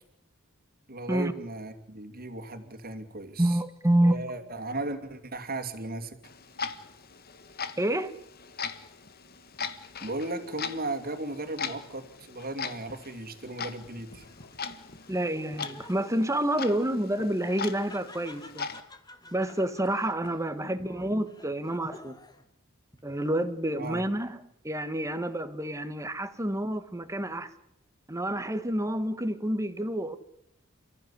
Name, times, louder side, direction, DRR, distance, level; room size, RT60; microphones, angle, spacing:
voice 1, 0.9-3.6 4.0-6.2 10.0-14.3 20.8-20.9 23.7-24.0, right 2 dB, 45° right, 2.7 m, -36 dB
voice 2, 3.4-4.2 7.8-8.1 15.1-18.7 19.3-22.2 23.0-27.5 28.1-30.2, right 1 dB, 15° right, 1.5 m, -28 dB
Clock, 6.2-18.8, left 5 dB, 50° left, 1.6 m, -40 dB
Laughter, 14.1-22.5 22.9-23.6, left 2 dB, 20° left, 2.0 m, -52 dB
29.0 x 15.0 x 9.9 m
head